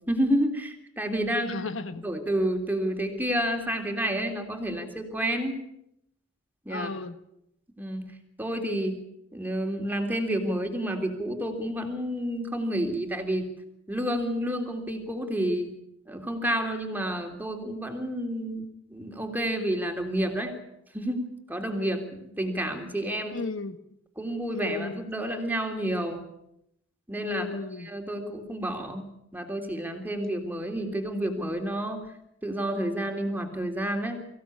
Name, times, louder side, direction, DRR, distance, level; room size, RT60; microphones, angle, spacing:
voice 1, 0.1-1.6 2.0-5.6 6.6-6.9 7.8-8.0 8.4-8.9 9.3-13.4 13.9-15.7 16.1-20.6 20.9-23.4 24.2-26.2 27.1-27.5 27.8-29.1 29.3-32.0 32.4-34.2, right 1 dB, 10° right, 4 dB, 3.3 m, -29 dB
voice 2, 1.4-2.1 6.7-7.2 23.3-23.8 24.5-25.0 27.2-27.9, left 3 dB, 85° left, 11 dB, 1.3 m, -35 dB
24.0 x 16.0 x 8.7 m, 0.79 s
head